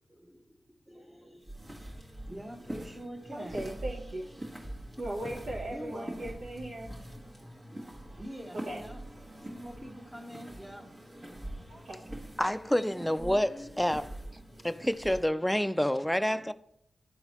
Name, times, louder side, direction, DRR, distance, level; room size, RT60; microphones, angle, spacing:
voice 1, 0.1-0.6 0.9-3.7 5.7-6.3 8.1-9.0 9.4-10.8 13.2-13.7, equal, 10° right, 1.0 m, -45 dB
sound 1, 1.4-15.3, right 1 dB, 45° right, 1.5 m, -44 dB
voice 2, 3.3-4.2 5.0-6.9 8.7-8.8 11.7-12.0, right 1 dB, 75° right, 1.0 m, -38 dB
voice 3, 12.4-14.1 14.6-16.5, equal, 5° left, 0.4 m, -28 dB
11.0 x 3.9 x 3.0 m
cardioid pair, 45°, 0 cm